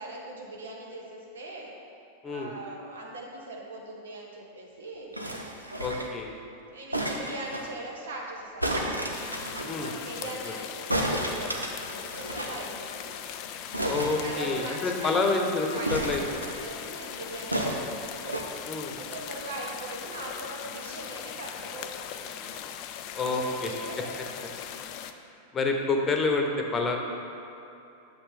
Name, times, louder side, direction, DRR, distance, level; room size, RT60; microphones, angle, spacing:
voice 1, 0.0-1.7 2.2-5.1 5.6-6.0 6.5-9.1 9.6-13.2 14.2-15.2 15.7-18.4 19.0-22.8 23.2-24.7, right 2 dB, 65° right, -1 dB, 1.3 m, -41 dB
sound 1, 5.1-6.2 6.9-7.7 8.6-9.7 10.9-12.6 12.9-13.0 13.2-13.3 13.7-14.9 15.8-16.8 17.5-18.5 19.2-19.3, right 1 dB, 85° right, 0.8 m, -32 dB
voice 2, 5.8-6.3 9.7-9.9 10.5-10.6 13.9-16.4 18.7-19.0 23.1-23.7 25.5-27.0, left 3 dB, 20° left, 2 dB, 1.0 m, -28 dB
sound 2, 9.1-25.1, left 9 dB, 40° left, 0.4 m, -40 dB
8.5 x 7.1 x 3.7 m, 2.8 s
figure-of-eight pair, 90°, 0 cm